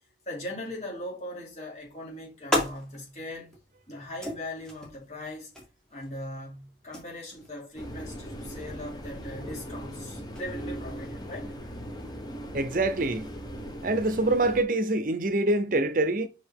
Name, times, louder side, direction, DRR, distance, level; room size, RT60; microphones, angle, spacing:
voice 1, 0.3-3.6 3.9-5.5 5.9-11.5, left 1 dB, 40° left, 2.9 m, -39 dB
sound 1, 1.8-12.2, left 1 dB, 5° left, 1.8 m, -39 dB
sound 2, 7.8-14.6, equal, 20° left, 0.9 m, -39 dB
voice 2, 12.5-13.3 13.8-16.3, right 2 dB, 45° right, 0.7 m, -25 dB
5.7 x 5.1 x 3.5 m
head